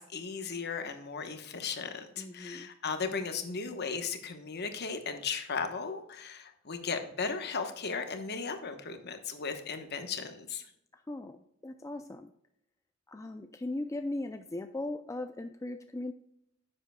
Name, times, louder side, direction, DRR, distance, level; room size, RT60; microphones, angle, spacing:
voice 1, 0.0-10.6, left 5 dB, 50° left, 7 dB, 1.0 m, -36 dB
voice 2, 2.2-2.7 10.9-12.3 13.1-16.1, left 2 dB, 15° left, 7 dB, 0.3 m, -38 dB
10.0 x 7.6 x 2.2 m, 0.73 s
head